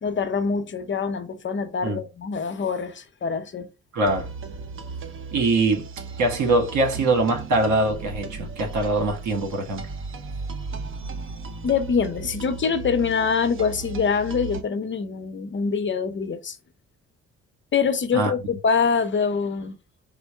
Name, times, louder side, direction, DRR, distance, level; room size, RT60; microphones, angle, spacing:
voice 1, 0.0-3.7 11.6-16.6 17.7-19.8, left 5 dB, 40° left, 0.7 m, -24 dB
voice 2, 3.9-4.3 5.3-5.9 6.2-9.9 18.1-18.3, right 2 dB, 75° right, 1.5 m, -23 dB
sound 1, 4.0-14.6, right 4 dB, 45° right, 0.7 m, -36 dB
4.4 x 2.1 x 4.4 m
cardioid pair, 90°, 30 cm